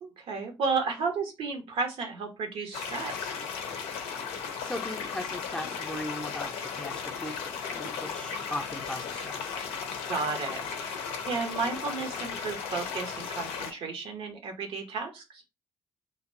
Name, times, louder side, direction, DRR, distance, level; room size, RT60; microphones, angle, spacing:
voice 1, 0.0-3.3 10.1-11.0 11.2-15.4, right 4 dB, 60° right, 4 dB, 0.7 m, -33 dB
sound 1, 2.7-13.7, left 6 dB, 70° left, 0.5 m, -36 dB
voice 2, 4.6-9.6, left 1 dB, 10° left, 2 dB, 0.6 m, -38 dB
2.6 x 2.1 x 2.5 m, 0.26 s
hypercardioid pair, 45°, 11 cm